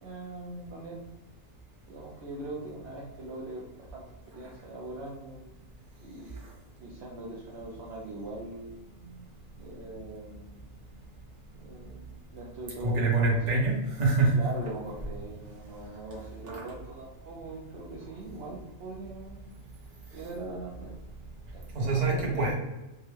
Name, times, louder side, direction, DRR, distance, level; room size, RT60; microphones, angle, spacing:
voice 1, 0.0-1.0 1.9-5.6 6.0-6.3 6.8-8.7 9.6-10.6 11.5-13.6 14.3-19.4 20.1-20.9 21.5-22.4, right 2 dB, 60° right, -5 dB, 0.9 m, -41 dB
voice 2, 12.8-14.4 16.5-16.6 21.7-22.5, right 3 dB, 35° right, -3 dB, 1.0 m, -25 dB
3.4 x 2.1 x 3.3 m, 0.97 s
omnidirectional pair, 1.4 m